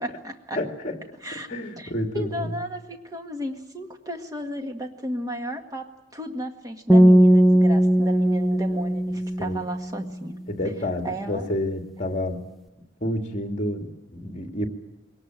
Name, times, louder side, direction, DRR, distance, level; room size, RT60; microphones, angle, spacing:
voice 1, 0.0-0.6 1.2-1.5 1.8-10.4 11.0-11.5 12.0-12.1, equal, 20° right, 5 dB, 1.7 m, -34 dB
voice 2, 0.5-1.0 1.3-2.5 9.4-9.6 10.5-12.5 13.0-14.7, left 1 dB, 40° left, 4 dB, 2.3 m, -29 dB
sound 1, 6.9-10.1, right 1 dB, ahead, 1.1 m, -18 dB
21.5 x 18.5 x 8.9 m, 0.95 s
head